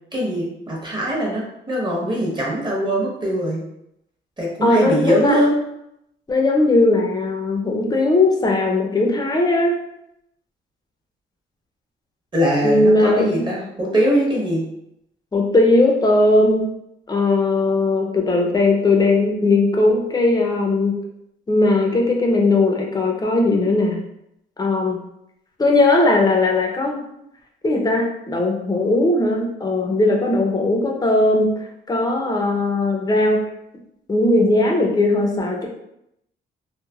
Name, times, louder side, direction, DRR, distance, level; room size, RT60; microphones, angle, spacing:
voice 1, 0.1-3.6 4.4-5.6 12.3-14.7, equal, 25° right, -3 dB, 1.0 m, -21 dB
voice 2, 4.6-5.4 6.3-9.8 12.6-13.5 15.3-16.7 17.1-20.9 21.5-24.0 24.6-25.0 25.6-27.0 27.6-31.5 31.9-33.4 34.1-35.7, left 2 dB, 20° left, 0 dB, 0.6 m, -18 dB
3.2 x 2.1 x 2.3 m, 0.80 s
cardioid pair, 90°, 20 cm